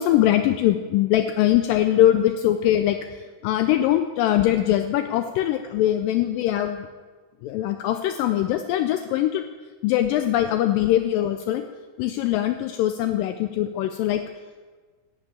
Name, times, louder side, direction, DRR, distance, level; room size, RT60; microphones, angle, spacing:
voice 1, 0.0-6.9 7.4-9.5 9.8-11.6 12.0-14.2, left 12 dB, 80° left, 8 dB, 2.1 m, -22 dB
11.0 x 7.4 x 8.3 m, 1.4 s
omnidirectional pair, 4.2 m